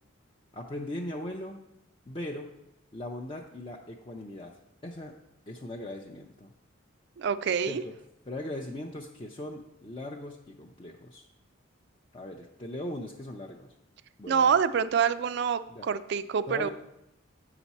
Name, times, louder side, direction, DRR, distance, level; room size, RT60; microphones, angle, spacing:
voice 1, 0.5-1.6 2.1-2.5 2.9-4.5 4.8-5.2 5.5-6.5 7.7-7.9 8.3-11.3 12.1-13.7 14.2-14.5 15.7-15.9 16.5-16.7, left 1 dB, 25° left, 0 dB, 0.5 m, -39 dB
voice 2, 7.2-7.8 14.3-16.7, right 7 dB, 60° right, 14 dB, 0.4 m, -26 dB
8.0 x 5.9 x 4.1 m, 0.85 s
head